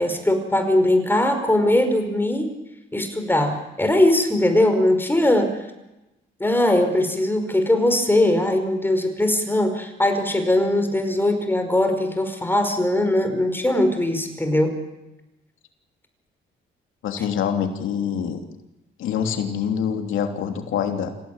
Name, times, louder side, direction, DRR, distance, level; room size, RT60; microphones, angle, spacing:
voice 1, 0.0-2.5 2.9-5.5 6.4-14.7, left 1 dB, 10° left, 7 dB, 5.1 m, -20 dB
voice 2, 17.0-18.4 19.0-21.1, left 8 dB, 85° left, 5 dB, 3.2 m, -25 dB
26.5 x 17.0 x 9.0 m, 0.97 s
cardioid pair, 90°, 20 cm